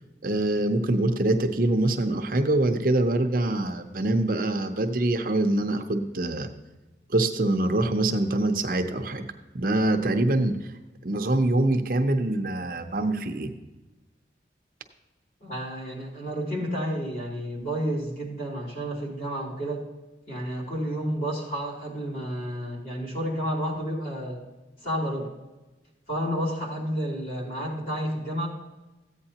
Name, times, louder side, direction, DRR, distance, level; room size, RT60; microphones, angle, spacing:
voice 1, 0.2-6.5 7.1-9.3 9.5-10.6 11.0-13.5, right 2 dB, 50° right, 6 dB, 0.7 m, -24 dB
voice 2, 15.4-19.8 20.3-24.4 24.8-25.3 26.1-28.5, equal, 50° left, -3 dB, 3.5 m, -30 dB
14.5 x 8.8 x 2.9 m, 1.1 s
head